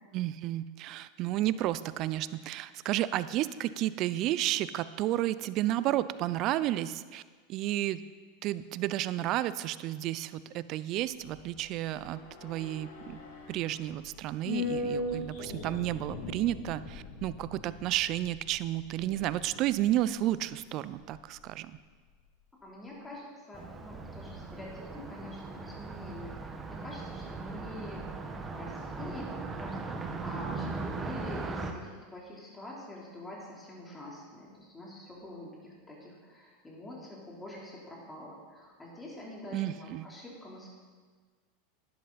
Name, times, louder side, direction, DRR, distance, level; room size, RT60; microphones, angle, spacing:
voice 1, 0.1-7.2 7.5-8.0 8.4-13.2 13.5-21.8 39.5-40.1, right 14 dB, 50° right, 16 dB, 0.5 m, -32 dB
sound 1, 11.0-21.5 21.8-21.9, left 2 dB, 65° left, 2.2 m, -40 dB
voice 2, 22.6-40.7, left 1 dB, 15° left, -3 dB, 3.6 m, -46 dB
Car passing by, 23.5-31.7, right 3 dB, 20° right, 1.2 m, -39 dB
11.0 x 11.0 x 4.2 m, 1.5 s
hypercardioid pair, 105°, 0 cm